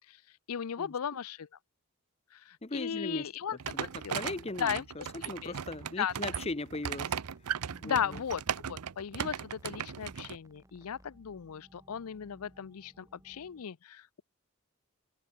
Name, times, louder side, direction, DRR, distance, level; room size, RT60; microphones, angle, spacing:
voice 1, 0.5-1.5 2.3-3.6 4.0-4.2 4.6-4.8 5.2-5.5 6.0-6.1 7.8-14.2, left 8 dB, 80° left, 0.5 m, -36 dB
voice 2, 2.6-3.3 3.7-7.2 7.8-8.2, left 2 dB, 30° left, 0.9 m, -39 dB
sound 1, 2.8-13.6, equal, 15° right, 7.1 m, -64 dB
sound 2, 3.6-10.4, right 8 dB, 90° right, 0.7 m, -37 dB
head